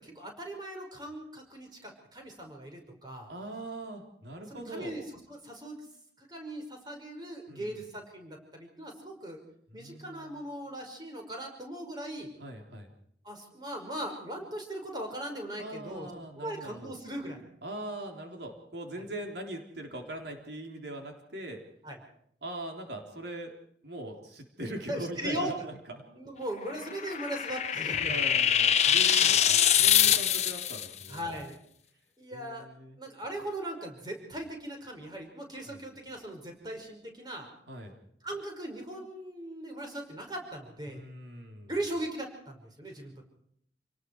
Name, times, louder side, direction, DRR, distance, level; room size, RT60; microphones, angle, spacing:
voice 1, 0.0-3.3 4.5-5.0 5.3-5.8 6.2-9.4 9.7-12.3 13.2-16.1 16.4-17.4 19.0-19.1 21.8-22.0 24.9-25.5 26.1-28.2 28.8-29.0 29.3-29.4 31.1-31.6 32.2-32.7 33.0-37.5 38.2-41.0 41.7-43.3, right 1 dB, 25° right, 2 dB, 5.5 m, -39 dB
voice 2, 3.3-4.9 7.5-7.8 9.7-10.4 12.4-12.9 15.6-17.0 17.6-21.6 22.4-23.5 23.8-26.0 27.2-27.3 28.0-31.4 32.3-33.0 35.6-35.8 37.7-37.9 40.9-41.7, right 1 dB, 80° right, 3 dB, 3.8 m, -41 dB
sound 1, 26.7-30.9, left 9 dB, 40° left, 1.1 m, -24 dB
28.5 x 19.0 x 4.8 m, 0.68 s
head